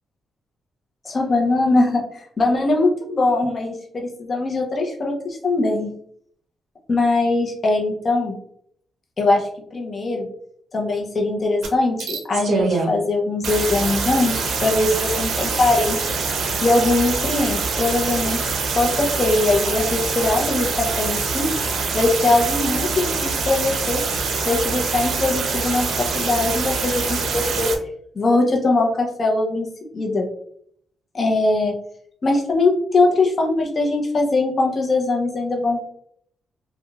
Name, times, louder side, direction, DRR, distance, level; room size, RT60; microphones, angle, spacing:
voice 1, 1.0-5.9 6.9-8.4 9.2-10.3 10.7-16.0 16.6-18.4 18.7-21.5 21.9-24.0 24.5-27.7 28.1-29.7 29.9-30.3 31.1-31.7 32.2-35.8, left 2 dB, 40° left, 0 dB, 0.7 m, -21 dB
sound 1, 11.6-11.7 12.0-12.9 13.4-27.8, right 4 dB, 75° right, 0.6 m, -24 dB
3.0 x 2.3 x 2.3 m, 0.66 s
cardioid pair, 95°, 0 cm